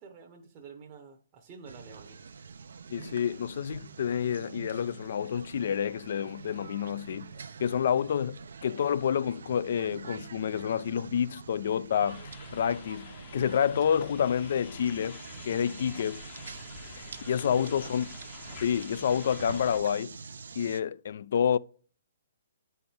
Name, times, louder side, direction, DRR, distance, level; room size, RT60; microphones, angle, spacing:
voice 1, 0.0-2.2 17.5-18.0, right 5 dB, 25° right, 0.8 m, -49 dB
sound 1, 1.7-20.8, right 5 dB, 80° right, 0.6 m, -45 dB
voice 2, 2.9-7.3 7.6-12.2 12.5-15.2 15.4-16.2 17.0-18.0 18.6-20.2 20.6-21.6, left 8 dB, 55° left, 0.3 m, -28 dB
sound 2, 12.1-19.8, left 7 dB, 30° left, 0.7 m, -48 dB
8.8 x 4.3 x 3.4 m
hypercardioid pair, 160°, 0 cm